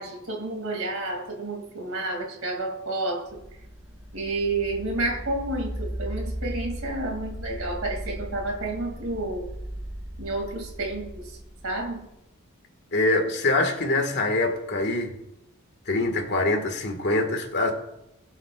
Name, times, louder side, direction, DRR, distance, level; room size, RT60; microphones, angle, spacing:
voice 1, 0.0-3.4 4.1-9.5 10.2-11.4 11.6-12.1, right 2 dB, 65° right, 1 dB, 2.7 m, -30 dB
sound 1, 3.3-12.1, equal, 10° right, 1.9 m, -37 dB
voice 2, 12.9-15.1 15.9-17.7, left 2 dB, 50° left, 4 dB, 1.8 m, -24 dB
22.5 x 7.6 x 2.5 m, 0.88 s
head